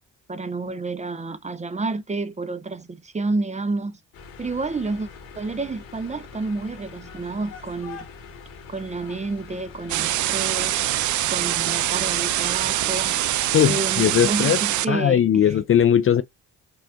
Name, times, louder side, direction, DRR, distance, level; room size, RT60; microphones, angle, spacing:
voice 1, 0.3-4.0 4.4-5.1 5.4-8.0 8.7-10.8 11.3-13.2 13.7-15.5, right 3 dB, 20° right, 0.6 m, -29 dB
sound 1, 4.1-13.7, left 5 dB, 90° left, 1.4 m, -43 dB
sound 2, 9.9-14.8, right 14 dB, 60° right, 0.5 m, -24 dB
voice 2, 13.5-14.6 14.9-16.2, left 9 dB, 40° left, 0.4 m, -19 dB
4.9 x 2.5 x 3.5 m
supercardioid pair, 60°, 34 cm